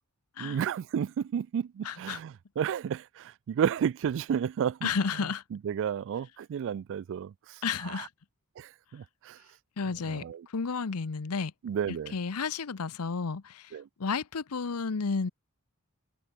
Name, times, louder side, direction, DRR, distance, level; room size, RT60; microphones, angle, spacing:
voice 1, 0.4-4.9 5.5-8.1 8.6-9.4 10.0-10.5 11.6-12.1 13.7-13.9, right 8 dB, 60° right, 0.3 m, -32 dB
voice 2, 1.8-2.2 4.8-5.4 7.6-8.1 9.8-10.2 10.5-11.5 12.1-13.7 14.0-15.3, left 5 dB, 90° left, 0.8 m, -31 dB
head